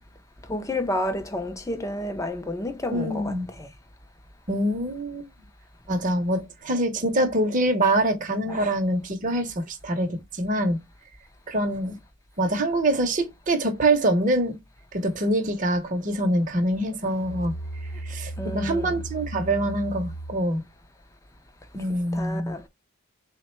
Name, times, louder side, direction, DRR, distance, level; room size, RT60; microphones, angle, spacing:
voice 1, 0.5-3.7 18.4-19.0 22.1-22.7, left 1 dB, 15° left, 0.4 m, -30 dB
voice 2, 2.9-3.4 4.5-5.3 5.9-10.8 11.5-12.0 12.4-14.6 14.9-17.5 18.0-20.6 21.7-22.6, right 1 dB, 40° right, 0.7 m, -25 dB
Musical instrument, 17.0-20.5, right 2 dB, 55° left, 0.8 m, -36 dB
3.6 x 2.1 x 4.3 m
head